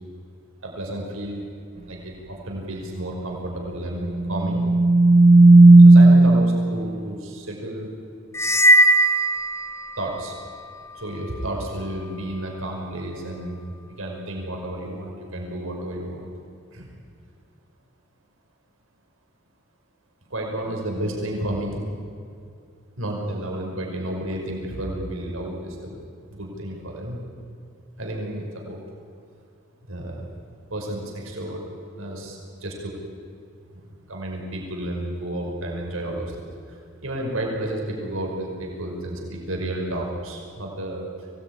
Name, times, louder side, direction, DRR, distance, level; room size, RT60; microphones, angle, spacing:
voice 1, 0.6-1.5 1.9-4.6 5.8-7.9 10.0-10.3 10.9-13.6 14.0-16.3 16.7-16.9 20.3-21.8 23.0-26.0 26.3-27.2 28.0-28.8 29.9-30.3 30.7-31.6 31.9-33.0 33.7-33.8 34.1-36.8 37.0-41.1, right 1 dB, 90° right, 0 dB, 5.6 m, -31 dB
sound 1, 4.2-6.8, right 2 dB, 35° right, 0.5 m, -12 dB
sound 2, 8.3-10.2, right 1 dB, 15° left, 0.6 m, -18 dB
24.0 x 18.5 x 9.7 m, 2.4 s
head